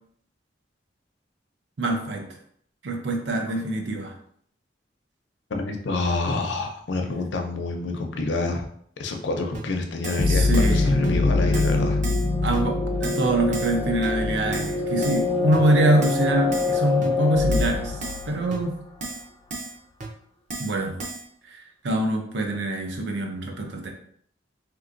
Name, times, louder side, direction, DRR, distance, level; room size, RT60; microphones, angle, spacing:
voice 1, 1.8-2.2 2.8-4.1 10.3-10.8 12.4-18.0 18.3-18.8 20.6-20.9 21.5-23.9, right 1 dB, 85° right, 3 dB, 0.6 m, -24 dB
voice 2, 5.5-8.7 9.0-12.0, left 3 dB, 90° left, 4 dB, 0.5 m, -27 dB
Keyboard (musical), 9.5-9.6 10.0-10.3 10.5-10.8 11.0-11.1 11.5-11.8 12.0-12.3 12.5-12.6 13.0-13.3 13.5-13.8 14.0-14.1 14.5-14.8 15.0-15.2 15.5-15.6 16.0-16.2 16.5-16.8 17.0-17.1 17.5-17.7 18.0-18.2 18.5-18.6 19.0-19.2 19.5-19.7 20.0-20.1 20.5-20.7 21.0-21.2, right 3 dB, 45° right, 0.7 m, -34 dB
sound 1, 10.2-18.8, left 3 dB, 35° left, 0.4 m, -24 dB
3.3 x 3.0 x 2.5 m, 0.64 s
head